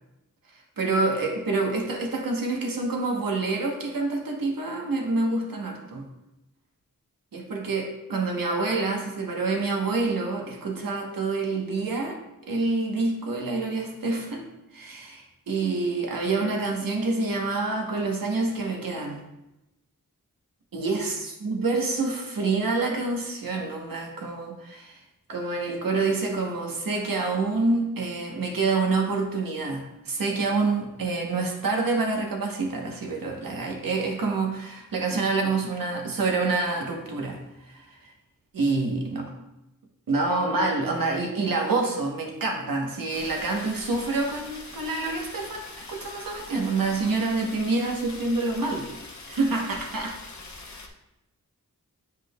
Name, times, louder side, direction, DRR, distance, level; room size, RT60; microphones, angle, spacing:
voice 1, 0.5-6.1 7.3-19.2 20.7-25.0 25.3-38.1 38.5-39.3 40.1-48.9 49.3-50.2, right 3 dB, 80° right, 1 dB, 1.1 m, -27 dB
sound 1, 43.1-50.9, left 3 dB, 55° left, 0.8 m, -43 dB
8.3 x 4.9 x 2.3 m, 0.93 s
wide cardioid pair, 65°, 34 cm